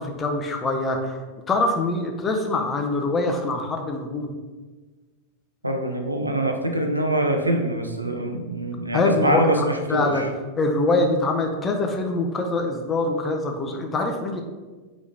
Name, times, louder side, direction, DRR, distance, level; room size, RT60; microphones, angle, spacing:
voice 1, 0.0-4.3 8.9-10.3 10.6-14.4, left 2 dB, 20° left, 3 dB, 0.5 m, -24 dB
voice 2, 5.6-10.3, right 1 dB, 85° right, 4 dB, 0.4 m, -24 dB
3.7 x 3.0 x 3.2 m, 1.3 s
figure-of-eight pair, 90°, 0 cm